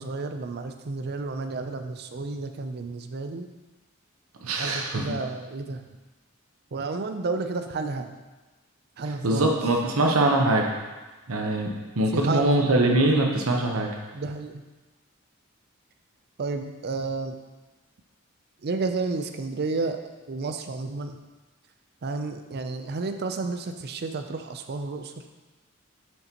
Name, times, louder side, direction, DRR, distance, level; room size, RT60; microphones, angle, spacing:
voice 1, 0.0-3.5 4.6-5.8 6.7-8.1 9.0-9.6 12.1-12.5 14.1-14.6 16.4-17.4 18.6-20.0 20.3-21.2 22.0-25.1, right 3 dB, 50° right, 7 dB, 0.5 m, -31 dB
voice 2, 4.4-5.1 9.2-10.6 11.3-13.9, right 2 dB, 80° right, 1 dB, 0.9 m, -22 dB
6.7 x 6.6 x 2.9 m, 1.2 s
head